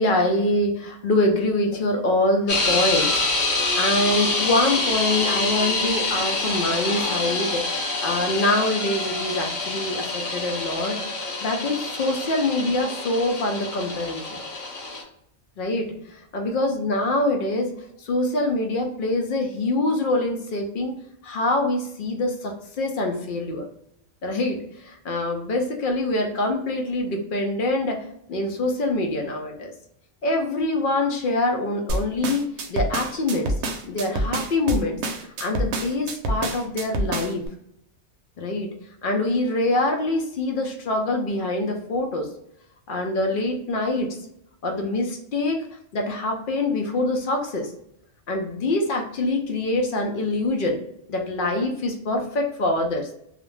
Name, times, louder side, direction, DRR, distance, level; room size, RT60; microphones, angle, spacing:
voice 1, 0.0-3.1 3.8-11.0 11.4-14.4 15.6-17.7 18.0-20.9 21.2-23.7 24.2-28.0 28.3-29.7 30.2-32.4 32.7-33.5 33.9-35.0 35.4-37.4 38.4-38.7 39.0-42.3 42.9-44.2 44.6-45.6 45.9-47.7 48.3-50.8 51.1-53.1, left 2 dB, 60° left, 3 dB, 0.6 m, -24 dB
sound 1, 2.5-15.0, left 2 dB, 85° left, 1.1 m, -26 dB
sound 2, 31.9-37.5, right 2 dB, 70° right, 0.8 m, -27 dB
2.4 x 2.1 x 3.0 m, 0.74 s
omnidirectional pair, 1.2 m